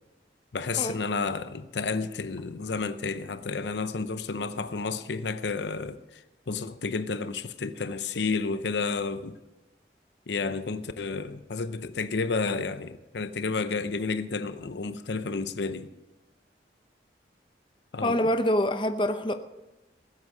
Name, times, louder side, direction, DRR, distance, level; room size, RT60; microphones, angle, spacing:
voice 1, 0.5-6.2 6.5-9.4 10.3-15.9 17.9-18.3, left 4 dB, 80° left, 0.7 m, -31 dB
voice 2, 18.0-19.3, left 1 dB, 25° left, 0.7 m, -25 dB
20.0 x 8.2 x 5.4 m
head